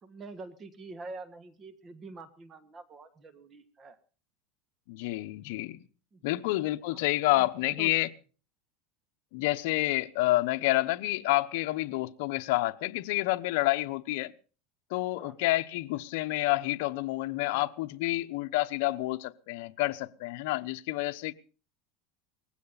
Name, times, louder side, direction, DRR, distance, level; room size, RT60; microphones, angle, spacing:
voice 1, 0.0-4.0 6.1-6.6 6.9-7.0 7.3-7.9 15.2-15.3 17.5-17.7, right 3 dB, 25° right, 1.5 m, -46 dB
voice 2, 4.9-5.8 6.2-8.1 9.3-14.3 14.9-21.3, left 18 dB, 65° left, 0.9 m, -29 dB
19.5 x 16.0 x 4.1 m
supercardioid pair, 150°, 0 cm